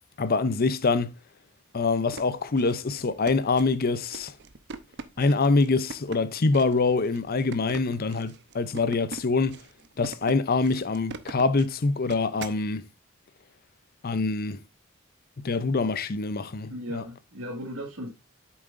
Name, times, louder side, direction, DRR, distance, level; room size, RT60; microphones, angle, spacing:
voice 1, 0.2-1.1 1.7-4.3 5.2-9.6 10.0-12.8 14.0-14.6 15.4-17.0, left 3 dB, 45° left, 0.6 m, -25 dB
sound 1, 1.9-12.6, right 3 dB, 55° right, 0.8 m, -42 dB
voice 2, 16.7-18.1, equal, 80° right, 2.1 m, -36 dB
8.6 x 7.1 x 2.6 m
head